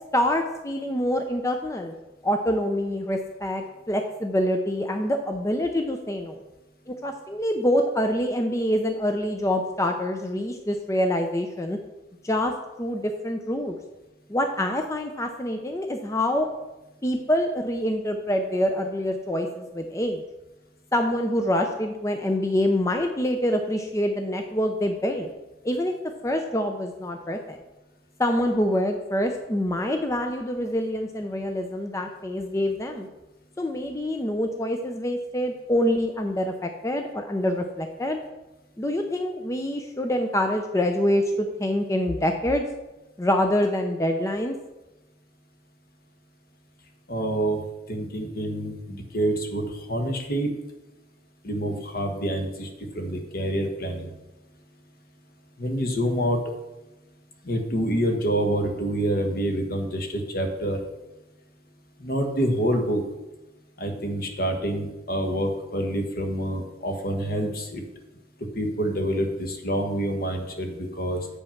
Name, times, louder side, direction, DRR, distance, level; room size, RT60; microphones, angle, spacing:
voice 1, 0.1-2.0 2.2-6.4 6.9-11.8 12.2-12.5 12.8-13.8 14.3-16.5 17.0-20.2 20.9-25.3 25.6-25.9 26.2-27.6 28.2-33.1 33.6-38.2 38.8-42.6 43.2-44.6, left 1 dB, 15° left, 4 dB, 0.5 m, -26 dB
voice 2, 47.1-47.6 47.9-50.5 51.4-52.7 52.9-54.1 55.6-56.4 57.4-60.8 62.0-63.0 63.8-67.8 68.5-71.3, right 1 dB, 55° left, 4 dB, 1.3 m, -27 dB
8.5 x 5.4 x 5.8 m, 1.0 s
head